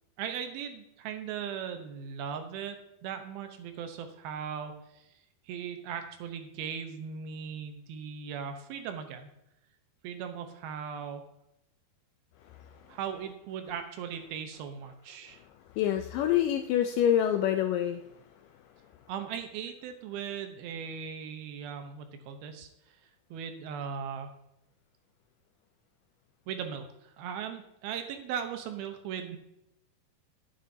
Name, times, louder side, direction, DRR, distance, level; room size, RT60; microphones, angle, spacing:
voice 1, 0.2-5.0 5.5-9.3 10.0-11.2 12.9-15.4 19.1-22.7 23.3-24.3 26.5-26.9 27.2-29.4, right 7 dB, 80° right, 7 dB, 2.8 m, -38 dB
voice 2, 15.8-18.0, left 10 dB, 85° left, 7 dB, 1.9 m, -26 dB
11.0 x 9.8 x 2.8 m, 0.82 s
omnidirectional pair, 4.4 m